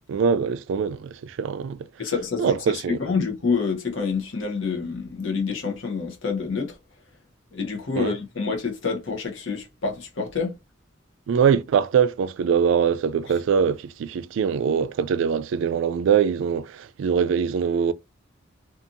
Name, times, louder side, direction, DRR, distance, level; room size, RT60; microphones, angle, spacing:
voice 1, 0.1-1.8 2.4-3.0 8.0-8.1 11.3-17.9, right 7 dB, 80° right, 0.3 m, -23 dB
voice 2, 2.0-6.8 7.5-10.6, left 5 dB, 85° left, 0.8 m, -27 dB
2.6 x 2.4 x 2.6 m
head